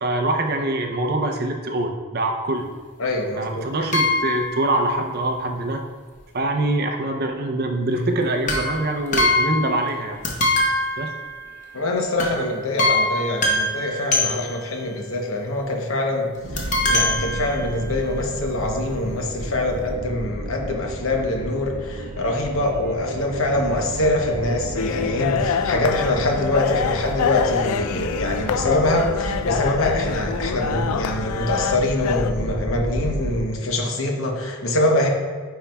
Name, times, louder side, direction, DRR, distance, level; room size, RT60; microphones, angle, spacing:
voice 1, 0.0-2.7 3.4-5.8 6.3-10.2 11.0-11.1, right 2 dB, 45° right, 4 dB, 0.5 m, -24 dB
voice 2, 3.0-3.7 11.7-35.1, left 1 dB, 65° left, 2 dB, 0.9 m, -24 dB
sound 1, 3.9-4.7 8.4-10.0 10.2-11.7 12.2-12.4 12.8-14.8 16.6-18.0 18.7-18.8 19.0-19.1, left 2 dB, 35° left, 0.8 m, -23 dB
sound 2, 16.4-33.4, right 1 dB, 90° right, 0.8 m, -32 dB
sound 3, 24.8-32.3, left 7 dB, 85° left, 0.3 m, -26 dB
9.4 x 4.6 x 2.3 m, 1.5 s
head